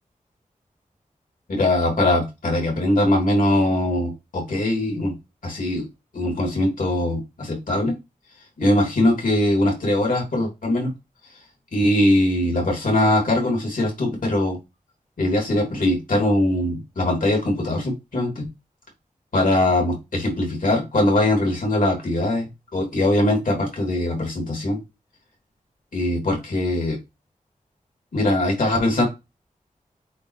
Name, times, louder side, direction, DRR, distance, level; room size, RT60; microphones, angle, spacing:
voice 1, 1.5-5.1 5.4-5.9 6.1-7.9 8.6-10.9 11.7-14.6 15.2-18.4 19.3-22.5 22.7-24.8 25.9-27.0 28.1-29.0, left 1 dB, 75° left, 1 dB, 3.0 m, -21 dB
8.4 x 2.8 x 4.8 m, 0.24 s
wide cardioid pair, 100°, 14 cm